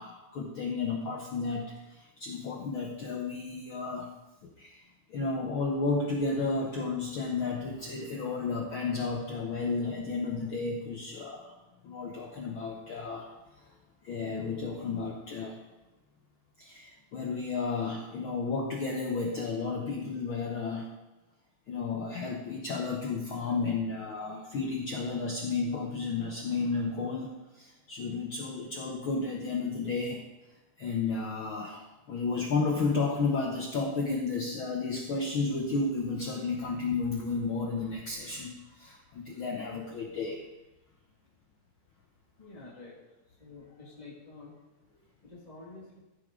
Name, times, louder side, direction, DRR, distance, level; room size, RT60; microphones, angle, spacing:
voice 1, 0.0-4.1 4.4-4.8 5.1-11.5 11.8-13.3 13.6-13.7 14.0-15.6 16.6-20.9 21.7-30.2 30.8-40.4, left 4 dB, 75° left, 0 dB, 1.1 m, -32 dB
voice 2, 42.4-43.0 43.3-44.5 45.2-46.0, left 3 dB, 20° left, -7 dB, 1.2 m, -49 dB
14.5 x 8.2 x 3.7 m, 1.0 s
omnidirectional pair, 3.7 m